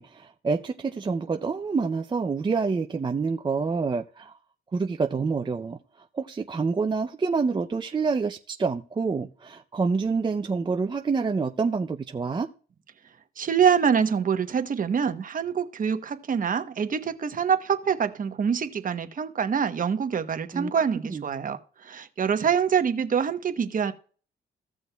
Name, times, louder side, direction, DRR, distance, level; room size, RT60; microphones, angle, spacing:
voice 1, 0.0-4.3 4.7-5.8 6.1-12.5 20.5-20.7 21.1-21.2, right 4 dB, 25° right, 0.5 m, -27 dB
voice 2, 13.4-21.6 21.8-23.9, right 7 dB, 45° right, 0.9 m, -25 dB
16.0 x 6.3 x 2.3 m
cardioid pair, 90°, 20 cm